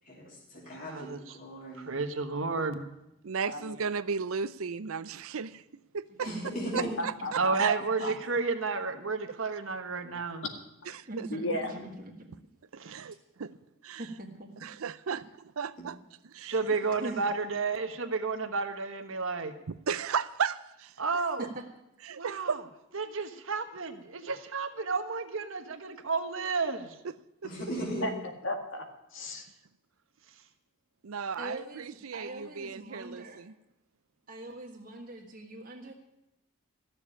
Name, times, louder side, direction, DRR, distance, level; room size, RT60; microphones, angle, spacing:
voice 1, 0.0-1.9 6.2-7.0 11.8-11.9 15.8-15.9 16.4-16.5 27.4-28.1, equal, 40° left, -4 dB, 3.1 m, -38 dB
voice 2, 0.7-1.2 1.8-2.9 7.3-10.4 12.7-13.1 16.4-19.5 21.0-21.4 22.2-22.6 22.9-27.0 30.3-30.4, right 4 dB, 65° right, 7 dB, 1.3 m, -32 dB
voice 3, 3.2-5.6 5.9-6.1 7.6-7.8 10.9-11.6 12.7-13.5 13.8-14.0 14.6-15.3 15.6-15.9 16.3-16.5 19.9-20.9 22.2-22.6 31.0-33.5, right 6 dB, 80° right, 16 dB, 0.5 m, -34 dB
voice 4, 6.2-6.9 11.1-12.1 14.0-14.7 16.7-17.3 21.5-21.6 31.4-33.4 34.3-35.9, right 1 dB, 40° right, 1 dB, 1.6 m, -42 dB
voice 5, 11.3-11.7 28.0-28.1 28.4-29.5, left 1 dB, 60° left, 4 dB, 2.0 m, -34 dB
14.5 x 7.1 x 10.0 m, 0.87 s
head